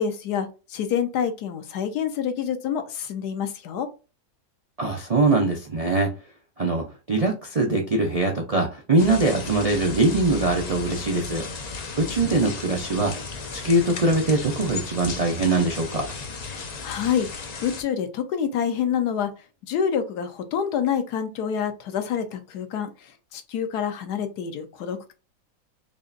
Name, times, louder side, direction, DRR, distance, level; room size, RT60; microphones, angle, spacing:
voice 1, 0.0-3.9 16.8-17.3 17.6-19.3 19.6-25.1, left 8 dB, 90° left, 1.3 m, -27 dB
voice 2, 4.8-6.1 6.6-11.5 12.0-13.1 13.5-16.1, right 2 dB, 60° right, 0.4 m, -22 dB
sound 1, 9.0-17.8, left 4 dB, 65° left, 0.4 m, -35 dB
5.0 x 2.5 x 2.5 m
omnidirectional pair, 1.7 m